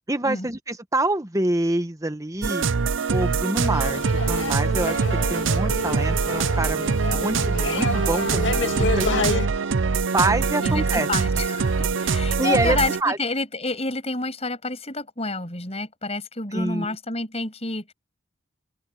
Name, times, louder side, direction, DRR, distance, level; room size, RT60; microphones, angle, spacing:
voice 1, 0.1-2.7 3.1-9.2 10.1-11.1 12.4-13.2 16.5-16.9, right 2 dB, 15° right, 1.1 m, -26 dB
sound 1, 2.4-13.0, right 5 dB, 85° right, 0.6 m, -23 dB
sound 2, 3.6-9.5, left 2 dB, 75° left, 2.0 m, -29 dB
voice 2, 10.6-17.9, left 2 dB, 35° left, 6.9 m, -29 dB
open air
head